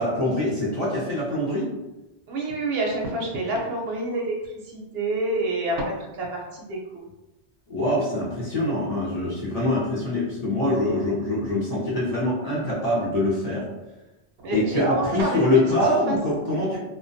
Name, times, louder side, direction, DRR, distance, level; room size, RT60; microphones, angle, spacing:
voice 1, 0.0-1.7 7.7-13.6 14.5-16.8, left 1 dB, 45° left, -7 dB, 0.6 m, -24 dB
voice 2, 2.3-7.0 14.4-15.3 15.7-16.2, right 2 dB, 65° right, -1 dB, 0.7 m, -28 dB
2.2 x 2.2 x 2.6 m, 1.0 s
omnidirectional pair, 1.2 m